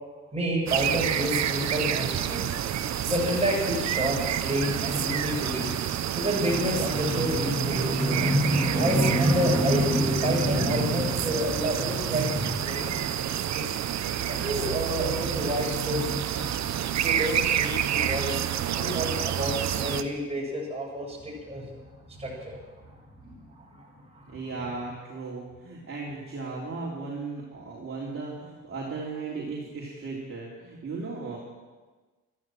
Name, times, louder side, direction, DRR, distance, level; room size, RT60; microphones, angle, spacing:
voice 1, 0.3-2.7 3.0-13.8 14.3-16.7 17.0-18.4 18.8-19.6 19.8-24.4, equal, 20° right, -2 dB, 7.3 m, -28 dB
sound 1, 0.7-20.0, right 10 dB, 65° right, 1.0 m, -29 dB
voice 2, 24.3-31.4, right 3 dB, 45° right, -5 dB, 3.5 m, -36 dB
14.0 x 13.5 x 7.7 m, 1.3 s
cardioid pair, 90°, 30 cm